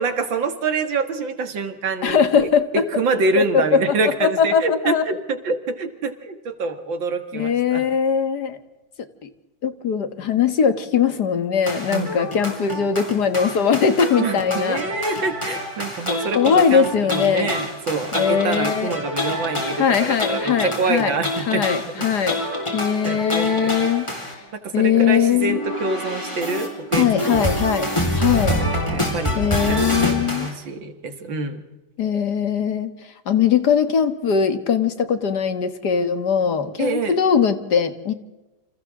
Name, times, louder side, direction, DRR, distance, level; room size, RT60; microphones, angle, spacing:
voice 1, 0.0-2.5 2.7-7.9 11.9-12.4 14.2-22.1 23.0-23.8 24.5-27.7 28.9-29.8 30.0-31.6 36.8-37.2, right 3 dB, 70° right, 8 dB, 2.5 m, -26 dB
voice 2, 2.0-2.6 3.4-3.8 4.2-5.0 7.3-8.6 9.6-14.8 16.4-17.5 18.1-18.9 19.8-21.2 21.5-22.4 22.7-24.1 24.7-25.6 27.0-27.9 28.2-28.6 29.4-30.5 32.0-32.9 33.3-38.1, left 7 dB, 55° left, 10 dB, 1.9 m, -20 dB
sound 1, 11.7-24.3 25.4-30.5, left 1 dB, 15° left, 4.3 m, -26 dB
29.0 x 27.0 x 3.7 m, 1.0 s
omnidirectional pair, 2.2 m